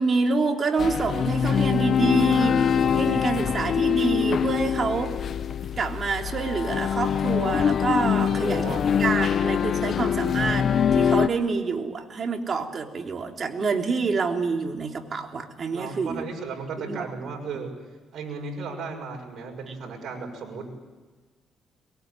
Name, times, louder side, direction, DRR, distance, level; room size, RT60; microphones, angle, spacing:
voice 1, 0.0-5.1 5.8-8.6 9.0-16.3 16.8-17.0, right 4 dB, 45° right, 3 dB, 3.4 m, -27 dB
sound 1, 0.8-11.3, left 7 dB, 55° left, 0.9 m, -23 dB
voice 2, 8.1-9.8 15.7-17.7 18.1-20.7, right 4 dB, 65° right, 2 dB, 6.5 m, -36 dB
23.0 x 22.0 x 9.6 m, 1.3 s
cardioid pair, 90°, 0 cm